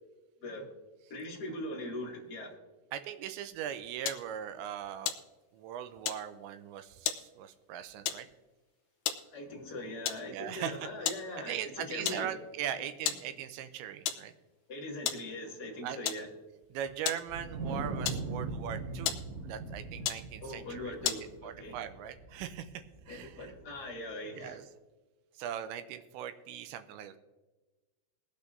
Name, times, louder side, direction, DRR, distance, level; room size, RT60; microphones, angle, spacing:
voice 1, 1.1-2.5 9.3-12.3 12.7-12.8 14.7-16.3 20.4-21.8 23.1-24.6, left 1 dB, 35° left, -3 dB, 1.7 m, -41 dB
voice 2, 2.9-5.1 5.5-8.3 10.3-10.9 11.3-14.3 15.8-16.0 16.7-23.5 24.4-24.6 25.4-27.2, right 10 dB, 80° right, 9 dB, 2.8 m, -40 dB
sound 1, 4.1-4.3 5.0-5.7 6.0-6.3 7.1-7.3 8.1-8.3 8.9-9.3 10.1-10.3 11.1-11.3 11.6-11.7 12.1-12.4 13.1-13.3 14.1-14.3 15.1-15.3 16.1-16.3 17.1-17.3 18.0-18.6 19.1-19.4 20.0-20.3 21.0-21.3, left 10 dB, 80° left, 2.5 m, -34 dB
Wind, 17.3-23.8, right 3 dB, 60° right, 1.9 m, -41 dB
21.5 x 8.5 x 2.7 m, 1.2 s
omnidirectional pair, 5.5 m